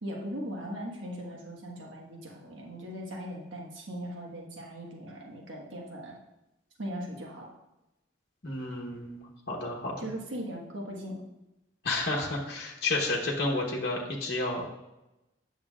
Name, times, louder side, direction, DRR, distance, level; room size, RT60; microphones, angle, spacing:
voice 1, 0.0-6.2 6.8-7.5 10.0-11.2, equal, 90° right, -1 dB, 1.4 m, -39 dB
voice 2, 8.4-10.1 11.8-14.7, left 2 dB, 55° left, -3 dB, 1.0 m, -31 dB
8.8 x 6.3 x 2.4 m, 0.95 s
head